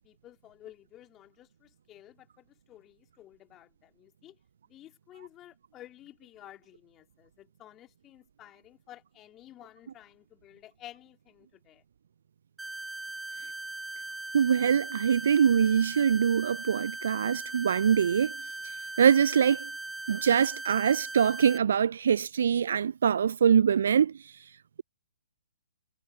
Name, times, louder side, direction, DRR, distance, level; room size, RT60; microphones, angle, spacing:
voice 1, 0.0-4.4 4.7-11.8, left 13 dB, 20° left, 3.1 m, -52 dB
sound 1, 12.6-21.6, right 2 dB, 5° right, 1.0 m, -39 dB
voice 2, 14.3-18.3 19.0-19.7 20.1-24.1, right 7 dB, 60° right, 0.4 m, -23 dB
figure-of-eight pair, 125°, 0 cm